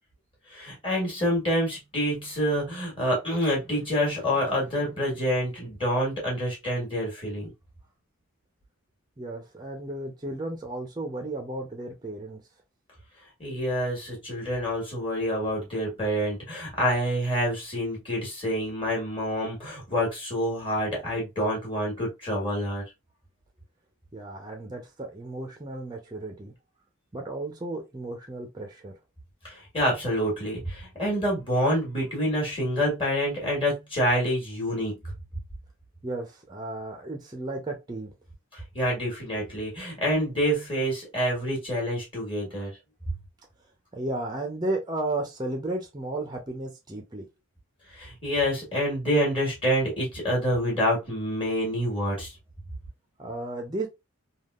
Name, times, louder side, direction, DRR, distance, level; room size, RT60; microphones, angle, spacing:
voice 1, 0.5-7.5 13.4-22.8 29.4-35.0 38.5-42.7 47.9-52.3, equal, 25° left, 1.4 m, -27 dB
voice 2, 9.2-12.4 24.1-26.5 27.1-28.9 36.0-38.1 43.9-47.2 53.2-53.9, right 2 dB, 20° right, 0.5 m, -34 dB
3.5 x 2.4 x 2.3 m
head